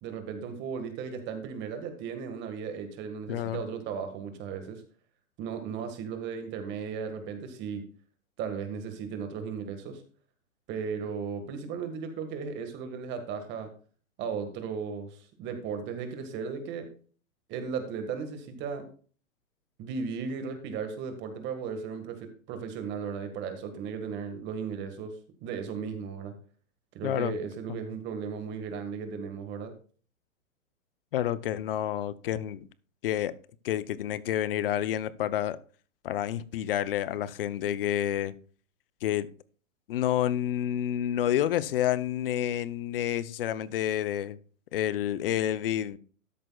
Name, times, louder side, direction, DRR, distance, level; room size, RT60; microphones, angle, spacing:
voice 1, 0.0-4.8 5.4-7.8 8.4-10.0 10.7-13.7 14.2-16.9 17.5-18.9 19.8-25.1 25.4-26.3 26.9-29.7, right 6 dB, 25° right, 1.7 m, -36 dB
voice 2, 3.3-3.6 27.0-27.3 27.7-27.8 31.1-32.7 33.0-33.4 33.6-35.6 36.0-38.3 39.0-39.3 39.9-44.4 44.7-46.0, left 11 dB, 40° left, 0.6 m, -29 dB
13.0 x 10.5 x 2.3 m
hypercardioid pair, 140°, 42 cm